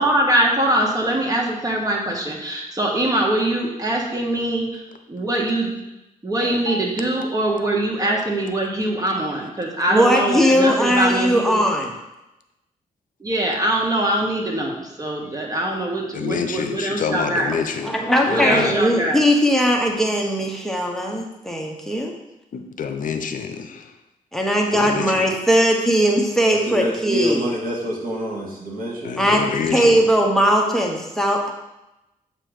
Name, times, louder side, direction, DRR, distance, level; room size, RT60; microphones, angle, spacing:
voice 1, 0.0-5.7 6.2-11.6 13.2-17.5 18.3-19.2, right 1 dB, 25° right, -1 dB, 1.4 m, -23 dB
voice 2, 9.9-11.9 17.8-22.1 24.3-27.4 29.2-29.4 29.7-31.5, equal, 5° left, 1 dB, 1.0 m, -19 dB
voice 3, 16.1-18.8 22.5-23.9 24.7-25.3 29.0-30.0, left 6 dB, 65° left, 7 dB, 0.6 m, -27 dB
voice 4, 18.0-19.0 26.5-29.1, right 1 dB, 75° right, -2 dB, 1.7 m, -28 dB
7.6 x 3.0 x 5.1 m, 0.92 s
cardioid pair, 90°, 15 cm